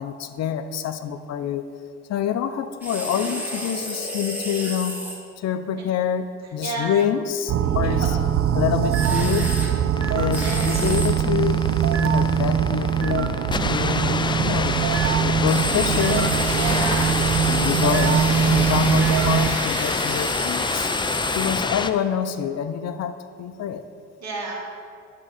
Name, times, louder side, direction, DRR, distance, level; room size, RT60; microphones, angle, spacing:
voice 1, 0.0-1.6 2.1-5.1 5.4-8.2 8.5-9.5 10.1-11.6 12.0-13.4 13.7-14.8 15.2-16.4 17.5-20.9 21.3-23.8, left 9 dB, 60° left, 10 dB, 0.6 m, -26 dB
sound 1, 2.8-5.2 8.9-9.7 10.3-11.1 15.5-21.7, equal, 5° right, 1.7 m, -30 dB
sound 2, 7.5-19.6, right 8 dB, 50° right, 0.5 m, -22 dB
sound 3, 10.0-21.9, left 4 dB, 15° left, 0.4 m, -27 dB
voice 2, 16.5-17.2 17.4-17.5 24.2-24.5, right 3 dB, 65° right, -1 dB, 2.1 m, -30 dB
11.0 x 3.7 x 6.4 m, 2.2 s
supercardioid pair, 80°, 29 cm